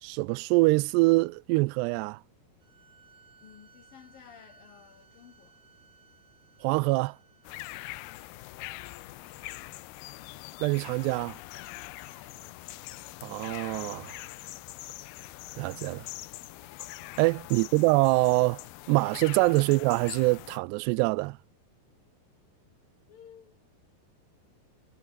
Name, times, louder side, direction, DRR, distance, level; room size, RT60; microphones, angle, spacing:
voice 1, 0.0-2.2 6.6-7.2 10.6-11.4 13.2-14.2 15.6-16.1 17.2-21.4, right 24 dB, 90° right, 2.7 m, -25 dB
sound 1, 2.6-8.3, right 5 dB, 30° right, 3.5 m, -60 dB
voice 2, 3.4-5.6 12.2-12.4 17.5-17.8 19.6-19.8 23.1-23.6, left 9 dB, 60° left, 3.7 m, -55 dB
sound 2, 7.4-20.6, left 18 dB, 80° left, 2.6 m, -43 dB
omnidirectional pair, 4.7 m